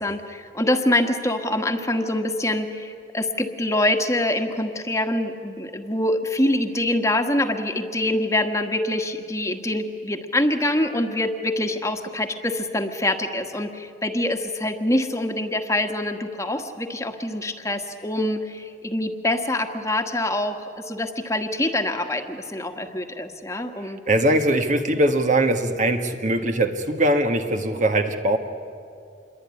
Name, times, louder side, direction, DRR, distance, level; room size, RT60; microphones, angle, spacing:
voice 1, 0.0-24.0, left 1 dB, 15° left, 5 dB, 1.5 m, -25 dB
voice 2, 24.1-28.4, right 1 dB, 45° right, 6 dB, 1.6 m, -21 dB
27.0 x 23.0 x 9.8 m, 2.4 s
head